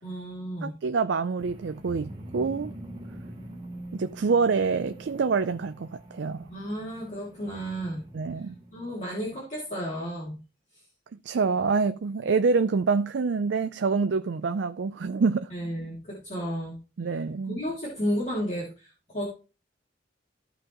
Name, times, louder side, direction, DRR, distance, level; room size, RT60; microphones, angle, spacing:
voice 1, 0.0-0.7 6.5-8.0 8.7-10.4 15.5-16.8 17.5-19.2, equal, 40° left, 2.5 m, -32 dB
voice 2, 0.6-2.7 3.9-6.4 8.1-8.5 11.2-15.5 17.0-17.6, right 4 dB, 70° right, 0.4 m, -26 dB
sound 1, 1.4-9.0, right 1 dB, 25° right, 1.7 m, -44 dB
14.5 x 5.1 x 3.0 m
head